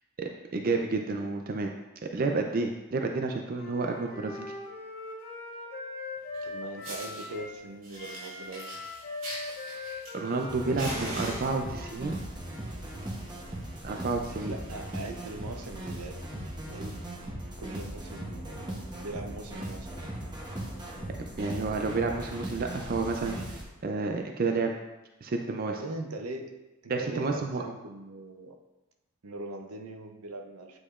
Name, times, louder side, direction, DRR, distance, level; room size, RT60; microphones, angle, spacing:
voice 1, 0.2-1.7 2.0-4.5 10.1-12.2 13.8-14.5 21.4-24.7 25.2-25.7 26.9-27.6, right 3 dB, 40° right, 3 dB, 0.4 m, -30 dB
Wind instrument woodwind instrument, 3.5-7.6 7.9-12.2, left 2 dB, 45° left, 1.4 m, -41 dB
Fire, 6.3-6.4 6.8-7.3 7.8-10.5 10.8-11.9 12.7-13.0 13.3-13.4 13.8-13.9 14.2-14.4 14.9-15.0 16.0-16.1, right 1 dB, 70° right, 2.0 m, -40 dB
voice 2, 6.4-8.8 14.5-16.3 16.7-17.0 17.6-20.1 25.6-26.6 26.8-28.5 29.2-30.8, right 2 dB, 85° right, 4 dB, 0.7 m, -40 dB
sound 1, 10.5-23.6, right 1 dB, 20° right, 0.8 m, -38 dB
8.4 x 4.9 x 2.5 m, 1.0 s
head